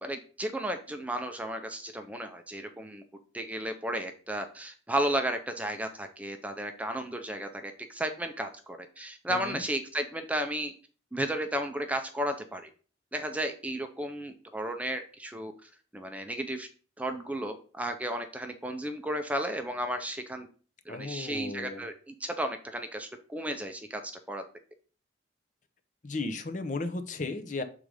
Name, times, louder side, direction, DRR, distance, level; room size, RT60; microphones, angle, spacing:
voice 1, 0.0-3.0 3.3-10.7 11.1-12.7 13.1-16.7 17.0-20.5 20.9-24.4, right 1 dB, 10° right, 6 dB, 0.5 m, -34 dB
voice 2, 9.3-9.6 20.9-21.8 26.0-27.6, left 3 dB, 40° left, 8 dB, 0.7 m, -35 dB
6.7 x 3.7 x 4.7 m, 0.40 s
head